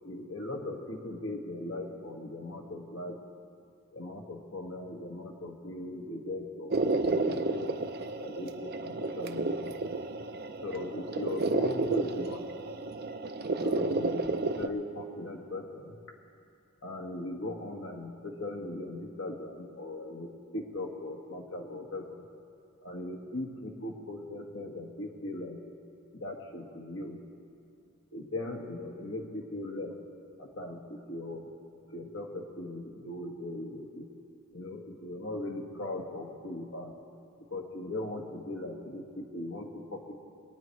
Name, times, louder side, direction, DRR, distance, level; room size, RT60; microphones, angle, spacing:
voice 1, 0.0-3.2 3.9-7.7 8.2-9.7 10.6-12.4 13.6-16.0 16.8-22.2 22.8-25.6 26.2-27.2 28.1-29.9 30.4-31.5 31.9-34.1 34.5-36.9 37.5-40.1, left 1 dB, 60° left, 0 dB, 1.6 m, -39 dB
sound 1, 6.7-14.7, right 3 dB, 45° right, 0.5 m, -31 dB
22.5 x 9.1 x 4.6 m, 2.5 s
head